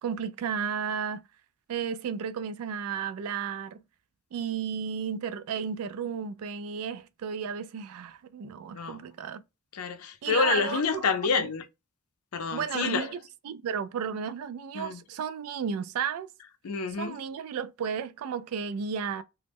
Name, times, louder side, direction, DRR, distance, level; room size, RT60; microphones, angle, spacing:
voice 1, 0.0-1.2 1.7-3.8 4.3-9.4 10.2-11.0 11.4-11.5 12.5-13.2 13.4-16.3 17.0-19.2, right 7 dB, 80° right, 0.3 m, -33 dB
voice 2, 9.7-11.6 12.3-13.1 14.7-15.0 16.6-17.2, left 5 dB, 85° left, 0.5 m, -28 dB
2.1 x 2.0 x 3.4 m
head